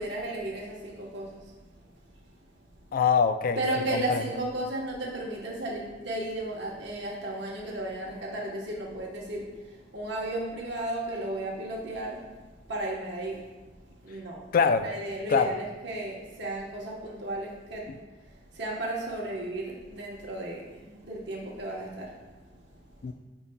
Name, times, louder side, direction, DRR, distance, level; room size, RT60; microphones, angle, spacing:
voice 1, 0.0-2.1 3.6-13.5 13.9-14.4 14.8-17.9 18.2-23.0, right 1 dB, 70° right, -3 dB, 1.1 m, -34 dB
voice 2, 2.9-3.6 3.9-4.2 14.5-14.8 15.3-15.5 23.0-23.1, left 6 dB, 50° left, 10 dB, 0.3 m, -23 dB
8.7 x 5.6 x 2.2 m, 1.3 s
head